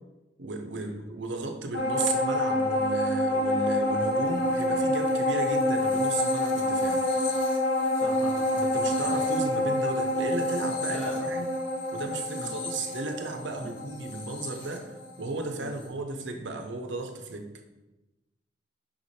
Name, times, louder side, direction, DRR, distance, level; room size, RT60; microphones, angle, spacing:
voice 1, 0.4-7.1 8.6-11.5 11.9-17.5, right 3 dB, 70° right, 5 dB, 0.8 m, -35 dB
sound 1, 1.7-15.4 15.8-15.9, left 1 dB, 80° left, 1.3 m, -27 dB
voice 2, 8.0-8.6 8.9-9.0 10.9-11.3 12.4-12.5 13.6-13.8 15.6-15.8, equal, 5° left, -3 dB, 1.2 m, -41 dB
5.6 x 4.9 x 4.2 m, 1.0 s
head